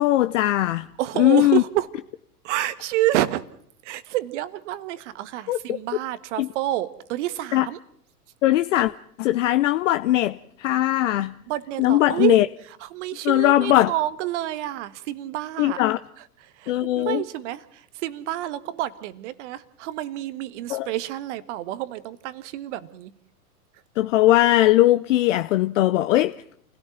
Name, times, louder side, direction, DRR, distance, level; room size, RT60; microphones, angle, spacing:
voice 1, 0.0-0.9 1.2-1.6 5.5-5.6 6.4-6.5 7.5-7.7 8.4-8.9 9.2-11.3 11.8-12.5 13.2-13.9 15.6-16.0 16.7-17.2 20.7-20.9 24.0-26.4, left 15 dB, 50° left, 0.8 m, -19 dB
voice 2, 1.0-1.9 2.4-3.4 3.8-7.8 11.5-12.4 12.8-15.8 16.4-23.1, right 14 dB, 50° right, 1.5 m, -28 dB
28.5 x 17.0 x 5.8 m
figure-of-eight pair, 100°, 47 cm